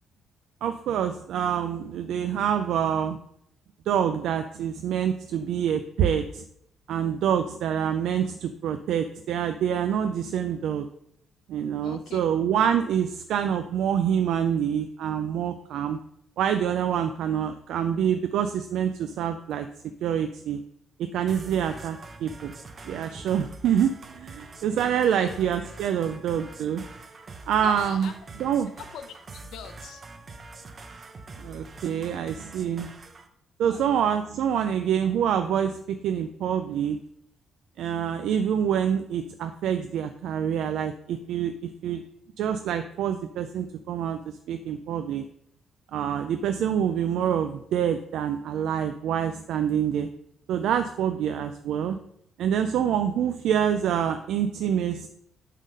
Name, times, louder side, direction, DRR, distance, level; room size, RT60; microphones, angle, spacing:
voice 1, 0.6-3.2 3.9-6.4 6.9-10.9 11.5-16.0 16.4-19.7 20.0-20.6 21.1-22.5 22.8-26.8 27.5-28.1 28.4-28.7 31.4-32.9 33.6-37.0 37.8-42.0 42.4-45.2 45.9-50.1 50.5-52.0 52.4-55.1, right 8 dB, 80° right, 7 dB, 0.4 m, -26 dB
voice 2, 11.8-12.2 24.7-25.3 27.6-28.1 28.8-30.0 33.6-33.9, left 8 dB, 80° left, 8 dB, 0.8 m, -42 dB
sound 1, 21.3-33.3, right 3 dB, 40° right, 0.8 m, -45 dB
8.2 x 3.7 x 5.5 m, 0.73 s
cardioid pair, 90°, 0 cm